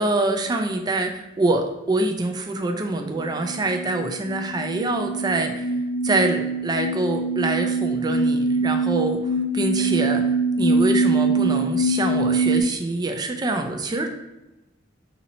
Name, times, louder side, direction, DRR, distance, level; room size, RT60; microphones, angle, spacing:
voice 1, 0.0-5.7 6.0-9.2 9.5-14.1, right 2 dB, 20° right, 4 dB, 0.3 m, -25 dB
sound 1, 3.2-12.6, right 2 dB, 60° left, 0.3 m, -23 dB
2.8 x 2.7 x 4.1 m, 1.0 s
head